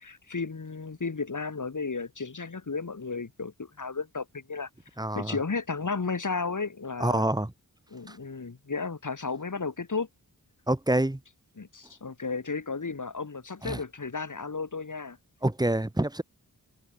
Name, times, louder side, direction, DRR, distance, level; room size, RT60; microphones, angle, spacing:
voice 1, 0.0-4.7 5.1-7.2 7.9-10.1 11.6-15.2, left 4 dB, 50° left, 4.6 m, -33 dB
voice 2, 5.0-5.4 7.0-7.5 8.1-8.2 10.7-11.2 13.6-13.8 15.4-16.2, right 1 dB, 10° right, 1.6 m, -26 dB
wide cardioid pair, 70°, 40 cm